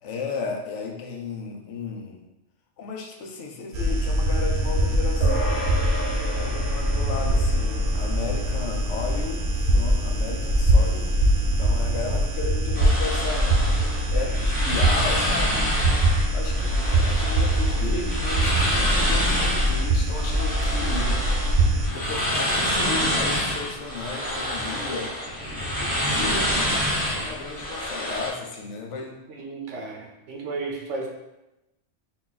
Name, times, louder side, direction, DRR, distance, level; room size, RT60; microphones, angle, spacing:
voice 1, 0.0-2.2 2.8-5.6 6.3-13.6 14.1-15.7 16.3-21.1 21.9-25.2 25.8-26.5 27.0-29.2, left 4 dB, 75° left, 1 dB, 1.0 m, -34 dB
sound 1, 3.7-21.9, right 1 dB, 55° right, 0.7 m, -23 dB
sound 2, 5.2-14.9, equal, 40° left, 0.9 m, -37 dB
sound 3, 12.7-28.3, equal, 10° left, 0.8 m, -27 dB
voice 2, 14.1-14.5 29.3-31.1, right 3 dB, 75° right, 1 dB, 1.0 m, -34 dB
3.9 x 2.3 x 3.9 m, 0.94 s
omnidirectional pair, 1.2 m